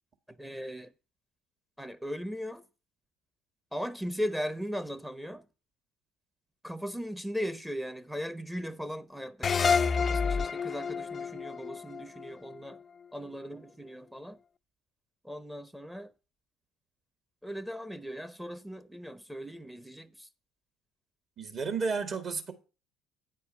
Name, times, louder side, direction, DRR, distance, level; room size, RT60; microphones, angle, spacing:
voice 1, 0.3-0.9 1.8-2.7 3.7-5.5 6.6-12.8 13.1-14.4 15.2-16.1 17.4-20.3, equal, 5° right, 0.7 m, -38 dB
sound 1, 9.4-12.7, left 5 dB, 35° left, 0.4 m, -29 dB
voice 2, 21.4-22.5, right 5 dB, 45° right, 2.0 m, -32 dB
9.3 x 4.5 x 6.9 m
hypercardioid pair, 60°, 0 cm